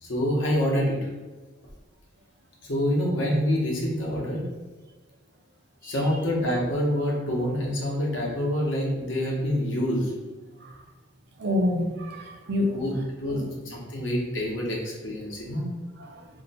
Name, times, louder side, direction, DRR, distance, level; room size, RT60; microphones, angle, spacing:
voice 1, 0.0-1.1 2.7-4.4 5.8-10.1 12.7-15.6, equal, 75° left, -2 dB, 0.9 m, -26 dB
voice 2, 11.4-12.8 13.3-13.4 16.0-16.2, left 1 dB, 60° right, 2 dB, 0.5 m, -28 dB
2.7 x 2.2 x 4.0 m, 1.3 s
head